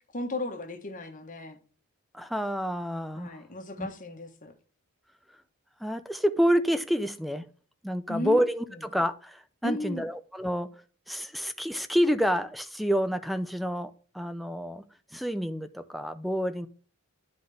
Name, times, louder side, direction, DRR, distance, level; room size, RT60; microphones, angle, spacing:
voice 1, 0.1-1.6 3.2-4.5 8.1-8.4 8.7-8.8 9.6-10.1, left 2 dB, 35° left, 1.1 m, -35 dB
voice 2, 2.1-3.3 3.8-3.9 5.8-7.5 7.8-10.7 11.1-14.8 15.1-16.7, equal, ahead, 0.4 m, -28 dB
10.0 x 4.0 x 3.3 m
head